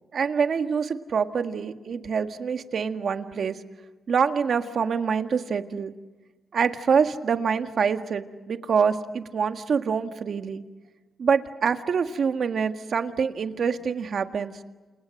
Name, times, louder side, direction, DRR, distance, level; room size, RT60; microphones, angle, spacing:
voice 1, 0.1-3.6 4.1-5.9 6.5-10.6 11.2-14.6, right 6 dB, 65° right, 7 dB, 1.7 m, -25 dB
29.0 x 28.0 x 6.5 m, 1.3 s
cardioid pair, 90°, 0 cm